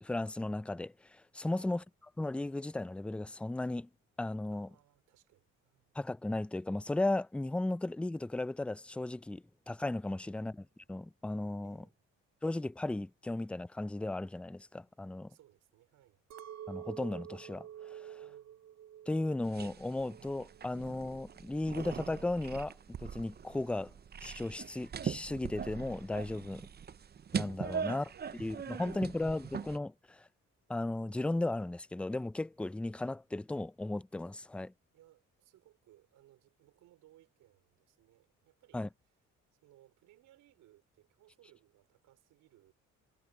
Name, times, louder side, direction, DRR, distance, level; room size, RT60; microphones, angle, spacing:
voice 1, 0.0-1.8 2.2-3.9 4.2-4.7 5.9-10.5 10.9-11.8 12.4-15.3 16.7-18.2 19.1-23.9 24.2-26.7 27.3-28.0 28.4-30.3 30.7-34.7 38.7-38.9, left 2 dB, 5° left, 0.4 m, -36 dB
voice 2, 4.5-6.0 10.1-10.6 11.6-12.0 15.3-16.2 18.2-18.7 27.6-29.5 34.9-38.8 39.6-42.7, right 14 dB, 90° right, 5.0 m, -65 dB
Chink clink, 16.3-20.7 21.0-21.7, right 10 dB, 60° right, 0.8 m, -49 dB
sound 1, 19.5-29.8, right 7 dB, 35° right, 0.6 m, -41 dB
cardioid pair, 90°, 30 cm